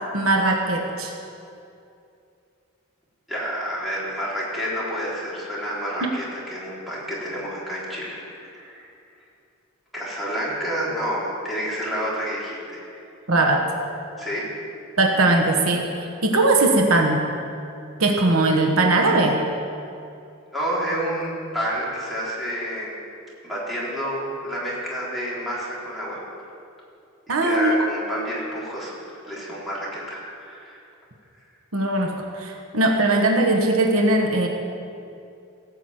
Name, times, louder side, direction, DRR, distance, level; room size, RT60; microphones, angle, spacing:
voice 1, 0.1-1.1 6.0-6.1 13.3-13.7 15.0-15.9 16.2-17.3 18.0-19.4 27.3-27.8 31.7-34.5, right 2 dB, 80° right, 2 dB, 1.3 m, -20 dB
voice 2, 3.3-8.9 9.9-12.9 14.2-14.5 20.5-22.9 23.4-26.2 27.3-28.9 29.2-30.8, equal, ahead, -8 dB, 3.8 m, -29 dB
17.0 x 6.1 x 8.0 m, 2.6 s
head